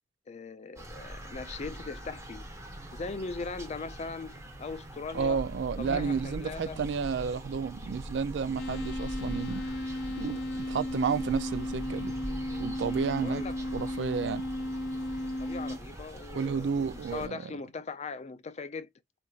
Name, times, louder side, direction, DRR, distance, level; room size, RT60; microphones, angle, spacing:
voice 1, 0.3-2.4 2.9-4.3 4.6-5.4 5.8-6.9 13.0-13.6 15.4-18.9, left 4 dB, 40° left, 0.4 m, -39 dB
sound 1, 0.8-17.3, right 1 dB, 15° right, 1.0 m, -42 dB
voice 2, 5.1-9.7 10.2-12.2 12.6-13.4 13.7-14.5 16.3-17.4, right 6 dB, 75° right, 0.4 m, -31 dB
sound 2, 8.6-15.8, left 1 dB, 80° left, 0.6 m, -35 dB
4.3 x 2.6 x 2.3 m
head